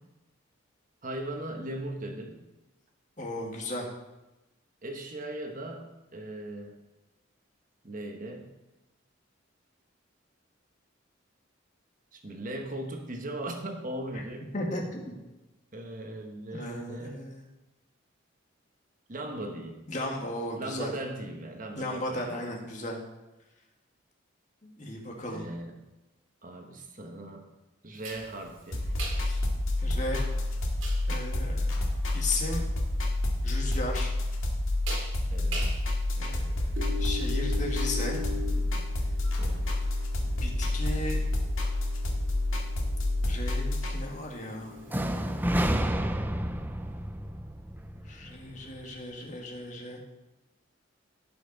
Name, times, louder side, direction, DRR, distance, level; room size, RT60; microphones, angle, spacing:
voice 1, 1.0-2.4 4.8-6.8 7.8-8.5 12.1-14.5 15.7-17.3 19.1-19.8 20.6-22.5 25.3-25.8 26.4-27.4 27.8-28.8 35.3-35.8 39.4-39.7, right 1 dB, 40° right, 4 dB, 1.3 m, -38 dB
voice 2, 3.2-3.9 14.5-15.2 16.5-17.5 19.9-20.9 21.8-23.0 24.6-25.5 29.2-29.4 29.8-30.2 31.1-31.8 32.1-32.6 33.4-34.1 36.2-38.2 40.2-41.2 43.2-44.8 47.9-50.0, left 1 dB, 35° left, 0 dB, 1.9 m, -36 dB
sound 1, 28.0-45.7, left 2 dB, 75° right, 2.1 m, -43 dB
sound 2, 28.7-43.9, left 1 dB, 85° left, 2.0 m, -29 dB
sound 3, 44.9-48.8, equal, 10° right, 0.4 m, -30 dB
16.5 x 6.0 x 4.0 m, 1.0 s
head